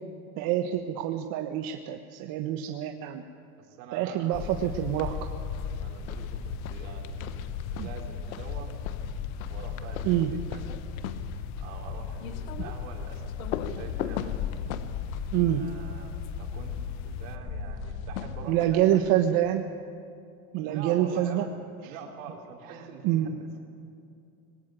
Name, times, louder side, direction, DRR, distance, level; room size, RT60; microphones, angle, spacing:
voice 1, 0.4-3.2 3.9-5.1 7.8-7.9 10.0-10.3 15.3-15.6 18.5-19.6 20.5-21.4 23.0-23.3, right 12 dB, 55° right, 5 dB, 1.3 m, -26 dB
voice 2, 3.6-4.5 5.8-8.7 9.5-10.7 11.6-14.4 15.4-19.4 20.6-21.5 21.8-23.5, right 5 dB, 75° right, 1 dB, 3.8 m, -45 dB
sound 1, 4.3-17.4, left 11 dB, 45° left, 0.7 m, -39 dB
sound 2, 4.5-18.4, left 4 dB, 70° left, 4.2 m, -38 dB
sound 3, 4.7-5.2 5.5-16.5 17.8-19.0, left 10 dB, 85° left, 1.2 m, -41 dB
20.0 x 17.5 x 9.2 m, 2.5 s
supercardioid pair, 120°, 40 cm